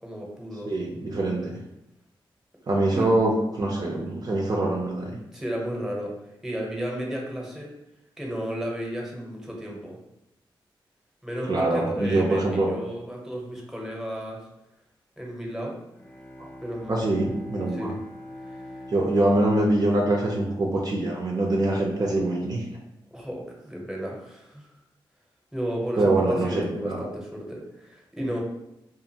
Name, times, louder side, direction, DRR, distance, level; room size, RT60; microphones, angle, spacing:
voice 1, 0.0-0.7 2.9-3.2 5.3-6.1 6.4-7.7 8.2-10.0 11.2-14.5 15.2-15.8 16.6-17.0 17.7-18.0 18.5-18.7 23.1-24.7 25.5-28.4, equal, 5° right, -2 dB, 0.8 m, -33 dB
voice 2, 0.7-1.5 2.7-5.2 11.5-12.7 16.9-17.9 18.9-22.6 26.0-27.1, right 2 dB, 45° right, -2 dB, 0.5 m, -24 dB
Bowed string instrument, 15.8-21.4, left 1 dB, 15° left, 0.4 m, -43 dB
2.5 x 2.4 x 2.8 m, 0.88 s
cardioid pair, 60°, 9 cm